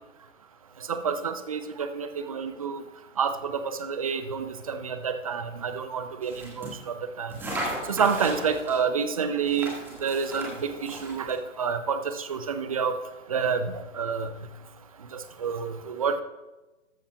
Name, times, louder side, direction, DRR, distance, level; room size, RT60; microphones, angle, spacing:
voice 1, 0.9-2.8 3.2-7.4 7.9-9.7 10.0-12.9 13.3-14.3 15.1-16.2, right 6 dB, 30° right, 9 dB, 0.6 m, -29 dB
sound 1, 6.2-6.8 7.3-8.8 9.4-11.4, right 1 dB, 5° right, 1.7 m, -36 dB
13.5 x 13.5 x 2.3 m, 1.1 s
figure-of-eight pair, 135°, 39 cm